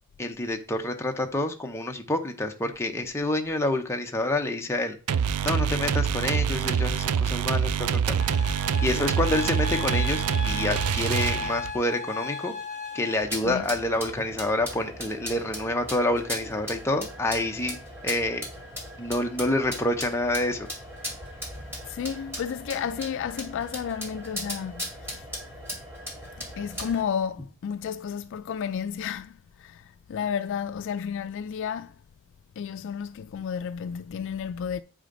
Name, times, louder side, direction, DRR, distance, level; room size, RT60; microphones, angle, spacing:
voice 1, 0.2-5.0 5.4-8.4 8.8-12.5 12.9-17.8 18.0-18.4 19.0-20.7, left 1 dB, 10° left, 0.8 m, -28 dB
sound 1, 5.1-11.8, right 7 dB, 85° right, 0.4 m, -25 dB
sound 2, 8.2-13.2, left 4 dB, 65° right, 2.1 m, -35 dB
sound 3, 13.2-27.0, equal, 10° right, 2.4 m, -38 dB
voice 2, 21.8-25.3 26.2-31.9 32.6-34.8, left 7 dB, 55° left, 0.3 m, -32 dB
8.9 x 5.0 x 3.8 m
head